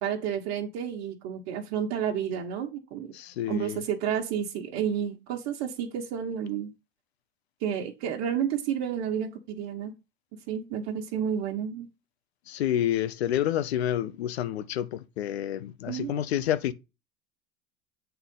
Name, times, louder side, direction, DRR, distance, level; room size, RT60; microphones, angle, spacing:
voice 1, 0.0-3.1 3.5-6.7 7.6-9.9 10.5-11.9 15.9-16.2, right 8 dB, 65° right, 1.3 m, -31 dB
voice 2, 3.1-3.8 12.5-16.7, left 11 dB, 85° left, 0.8 m, -29 dB
8.0 x 3.9 x 5.3 m
hypercardioid pair, 85°, 31 cm